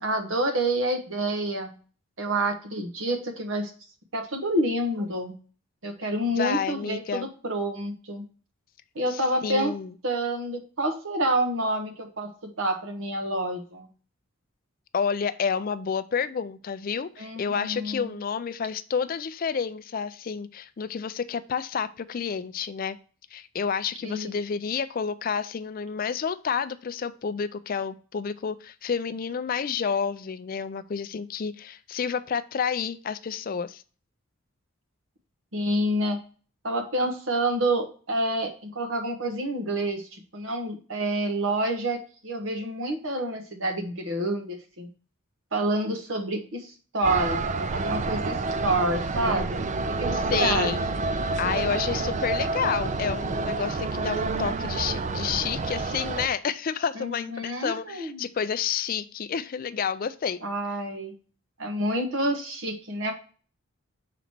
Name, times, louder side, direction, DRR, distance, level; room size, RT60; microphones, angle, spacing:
voice 1, 0.0-1.7 2.2-3.7 4.1-5.3 5.8-8.2 8.9-9.7 10.0-12.3 12.6-13.9 17.2-18.1 24.0-24.3 35.5-36.2 36.6-44.9 45.5-47.4 47.7-49.6 50.0-50.7 56.9-58.3 60.4-61.1 61.6-63.1, right 1 dB, 65° right, 1.3 m, -28 dB
voice 2, 6.3-7.3 9.1-9.9 14.9-23.0 23.3-33.8 50.1-50.9 51.4-60.4, left 6 dB, 45° left, 0.4 m, -30 dB
sound 1, 47.0-56.3, right 3 dB, 35° right, 0.4 m, -28 dB
6.1 x 4.0 x 4.3 m
head